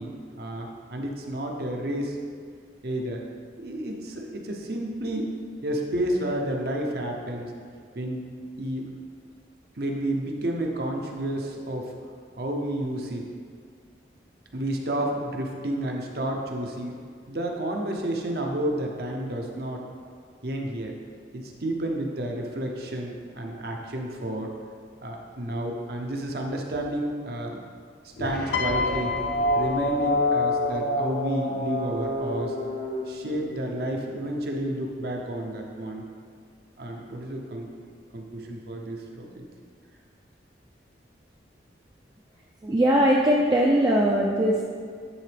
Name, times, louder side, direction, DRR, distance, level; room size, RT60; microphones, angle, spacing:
voice 1, 0.0-2.2 2.8-3.2 3.6-5.4 5.6-7.5 7.9-8.3 8.6-8.9 9.8-11.9 12.4-13.3 14.5-17.0 17.3-19.8 20.4-21.0 21.3-24.5 25.0-27.6 28.0-29.1 29.5-32.6 33.1-36.0 36.8-37.7 38.1-39.4, right 1 dB, 60° right, 1 dB, 0.7 m, -31 dB
sound 1, 28.2-33.7, left 1 dB, 55° left, 0.7 m, -28 dB
Piano, 28.5-30.9 31.9-32.2, left 6 dB, 80° left, 0.3 m, -31 dB
voice 2, 42.6-44.6, equal, 20° right, -2 dB, 0.4 m, -20 dB
9.9 x 3.7 x 3.4 m, 2.1 s
head